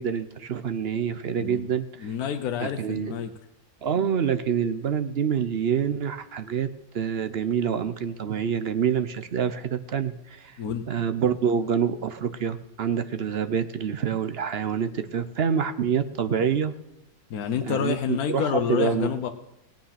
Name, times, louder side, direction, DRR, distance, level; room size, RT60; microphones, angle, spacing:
voice 1, 0.0-2.1 2.6-3.1 3.8-6.7 6.9-10.6 10.9-16.7 17.6-19.1, right 7 dB, 55° right, 11 dB, 0.8 m, -26 dB
voice 2, 1.4-1.7 2.0-3.3 10.6-10.9 17.3-19.3, left 8 dB, 75° left, 6 dB, 1.3 m, -28 dB
17.0 x 8.9 x 5.8 m, 0.91 s
omnidirectional pair, 1.6 m